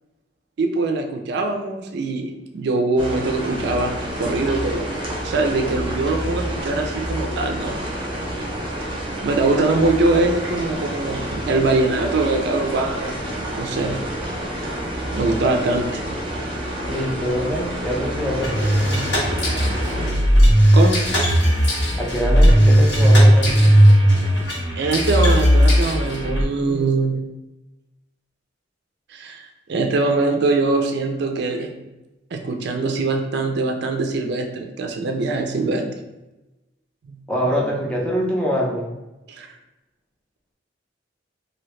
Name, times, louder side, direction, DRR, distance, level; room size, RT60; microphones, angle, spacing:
voice 1, 0.6-4.8 5.2-7.8 9.2-13.3 13.5-14.0 15.1-16.0 20.7-21.0 24.8-27.2 29.1-31.8 32.3-35.9 37.0-37.2 39.3-39.5, right 3 dB, 60° right, 4 dB, 0.4 m, -22 dB
sound 1, 3.0-20.1, right 1 dB, 30° right, 0.7 m, -28 dB
voice 2, 16.9-19.1 22.0-23.8 37.3-39.0, equal, 5° left, -3 dB, 0.5 m, -24 dB
sound 2, 18.4-26.4, equal, 70° left, 1.3 m, -16 dB
2.9 x 2.6 x 3.1 m, 1.0 s
head